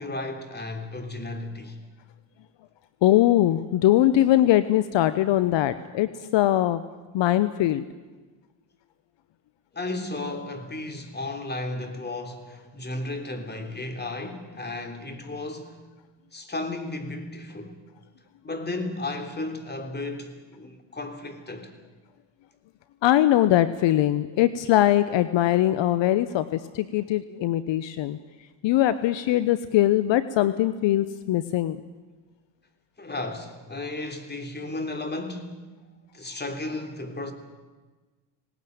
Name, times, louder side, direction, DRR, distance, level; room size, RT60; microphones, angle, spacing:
voice 1, 0.0-1.8 9.7-15.8 16.3-17.8 18.4-21.7 33.0-35.6 36.1-37.3, left 2 dB, 20° left, 3.4 m, -34 dB
voice 2, 3.0-6.8 7.1-7.8 23.0-28.2 28.6-31.8, left 13 dB, 65° left, 1.0 m, -21 dB
19.0 x 19.0 x 9.4 m
cardioid pair, 95°, 48 cm